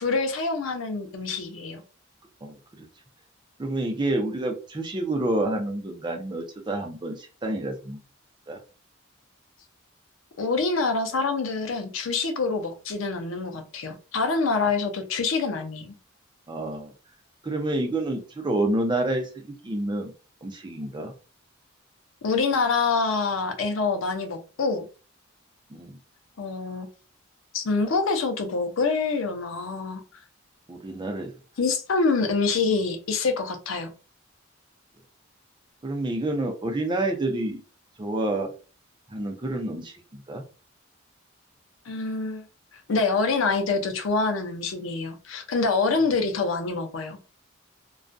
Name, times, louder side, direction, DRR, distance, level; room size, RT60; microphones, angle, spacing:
voice 1, 0.0-1.8 10.4-16.0 22.2-24.8 26.4-26.9 27.5-30.0 31.6-33.9 41.9-42.4 42.7-47.2, left 4 dB, 75° left, 0.5 m, -26 dB
voice 2, 3.6-8.0 8.5-8.6 16.5-16.9 17.4-20.1 20.4-21.1 25.7-26.0 30.7-31.3 35.8-37.6 38.0-38.5 39.1-40.4, right 2 dB, 20° right, 0.5 m, -28 dB
2.3 x 2.1 x 2.5 m
head